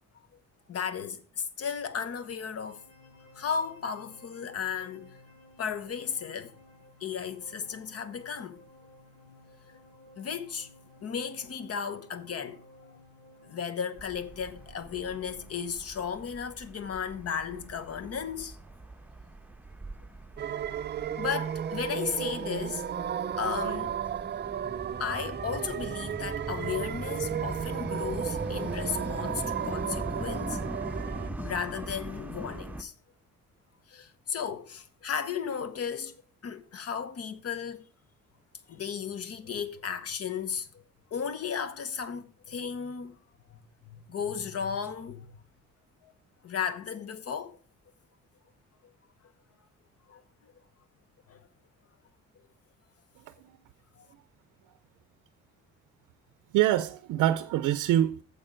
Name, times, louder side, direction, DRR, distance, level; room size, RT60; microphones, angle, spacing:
voice 1, 0.7-2.8 3.3-5.2 5.6-6.6 7.0-8.6 9.7-9.8 10.2-10.7 11.0-12.6 13.4-18.6 21.2-22.8 23.3-24.0 25.0-30.6 31.4-32.9 33.9-37.8 38.7-40.8 41.1-43.2 43.5-45.3 46.0-46.1 46.4-47.6 48.8-48.9 50.1-50.5 51.3-51.4 54.0-54.1, left 7 dB, 55° left, 1.0 m, -35 dB
sound 1, 2.0-15.6, left 2 dB, 80° left, 3.9 m, -56 dB
sound 2, 14.0-32.8, right 1 dB, 5° right, 0.9 m, -41 dB
sound 3, 20.4-31.3, right 8 dB, 35° right, 0.5 m, -34 dB
voice 2, 56.5-58.2, right 12 dB, 85° right, 0.5 m, -25 dB
8.5 x 7.0 x 5.0 m
cardioid pair, 90°, 30 cm